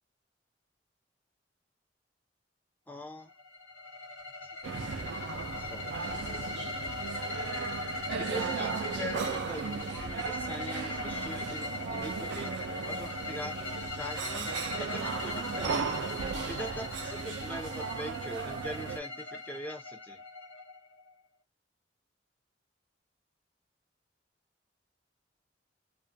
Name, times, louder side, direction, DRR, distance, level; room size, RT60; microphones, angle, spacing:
voice 1, 2.9-3.3 4.4-4.5 5.6-6.5 8.3-12.5 12.9-13.6 13.9-15.8 16.5-20.2, left 1 dB, 10° left, 0.6 m, -42 dB
sound 1, 3.3-21.1, left 3 dB, 80° left, 0.9 m, -40 dB
sound 2, 4.6-19.0, right 5 dB, 85° right, 0.4 m, -36 dB
2.3 x 2.2 x 2.6 m
head